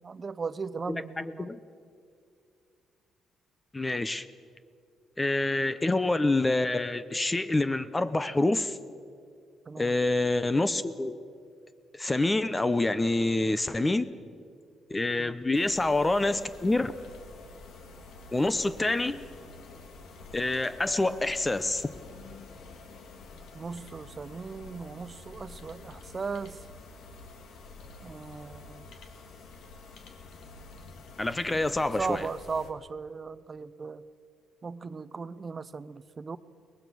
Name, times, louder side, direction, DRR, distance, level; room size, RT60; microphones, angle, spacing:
voice 1, 0.0-1.5 9.7-9.9 15.2-15.4 23.5-26.6 28.0-28.8 32.0-34.0 34.6-36.4, right 4 dB, 35° right, 16 dB, 0.7 m, -37 dB
voice 2, 0.9-1.6 3.7-4.2 5.2-8.8 9.8-11.2 11.9-14.1 14.9-16.9 18.3-19.2 20.3-21.9 31.2-32.3, left 2 dB, 20° left, 13 dB, 0.7 m, -27 dB
sound 1, 15.5-32.7, left 3 dB, 75° left, 2.1 m, -48 dB
23.0 x 19.5 x 6.2 m, 2.3 s
cardioid pair, 90°, 0 cm